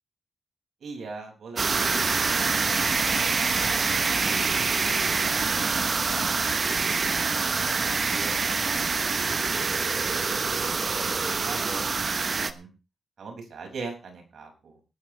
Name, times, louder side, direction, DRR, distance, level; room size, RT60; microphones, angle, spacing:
voice 1, 0.8-2.2 2.6-3.0 3.5-7.4 7.7-9.7 10.1-12.7 13.2-14.8, right 4 dB, 75° right, 2 dB, 6.2 m, -43 dB
sound 1, 1.6-12.5, right 4 dB, 45° right, 1.1 m, -25 dB
19.5 x 11.0 x 3.4 m, 0.30 s
cardioid pair, 90°, 0 cm